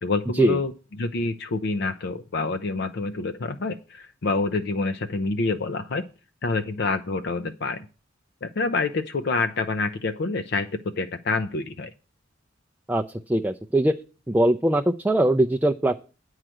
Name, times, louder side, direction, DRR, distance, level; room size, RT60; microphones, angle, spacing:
voice 1, 0.0-6.1 6.4-7.9 8.4-11.9, left 3 dB, 60° left, 8 dB, 0.5 m, -27 dB
voice 2, 13.3-13.9 14.3-16.0, right 1 dB, 10° right, 2 dB, 0.4 m, -21 dB
9.0 x 4.8 x 7.6 m, 0.34 s
head